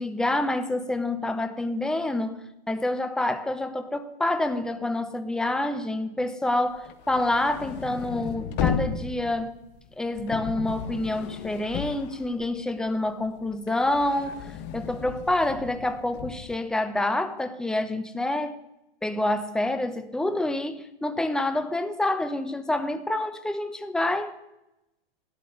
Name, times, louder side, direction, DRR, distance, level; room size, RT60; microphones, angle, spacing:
voice 1, 0.0-2.4 2.7-9.5 10.0-14.5 14.7-18.6 19.0-24.4, left 1 dB, ahead, 0.9 m, -27 dB
sound 1, 6.8-12.9 13.2-16.5, left 7 dB, 35° left, 1.5 m, -34 dB
13.0 x 10.5 x 9.4 m
hypercardioid pair, 130°, 30 cm